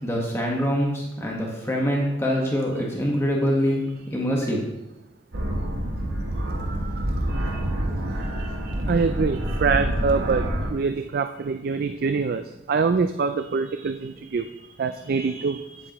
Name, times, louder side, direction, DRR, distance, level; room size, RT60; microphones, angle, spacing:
voice 1, 0.0-3.8 4.1-4.6, equal, 15° left, 1.4 m, -24 dB
sound 1, 5.3-10.7, right 1 dB, 80° right, 1.3 m, -27 dB
voice 2, 6.4-7.7 8.1-15.9, right 5 dB, 55° right, 0.4 m, -26 dB
9.5 x 7.9 x 3.0 m
head